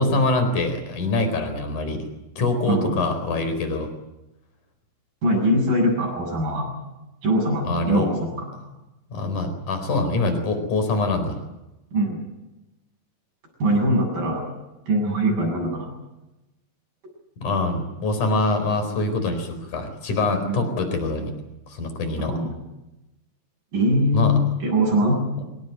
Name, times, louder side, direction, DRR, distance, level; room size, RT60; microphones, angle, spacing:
voice 1, 0.0-2.1 2.4-3.9 7.7-8.1 9.1-11.4 17.4-21.3 21.7-22.3 24.1-24.4, left 2 dB, 65° left, 7 dB, 5.8 m, -24 dB
voice 2, 2.6-3.0 5.2-6.6 7.2-8.5 11.9-12.2 13.6-14.4 14.9-15.9 20.5-20.6 22.2-22.6 23.7-25.2, equal, 80° right, -1 dB, 9.7 m, -22 dB
25.0 x 18.5 x 9.3 m, 0.96 s
omnidirectional pair, 3.9 m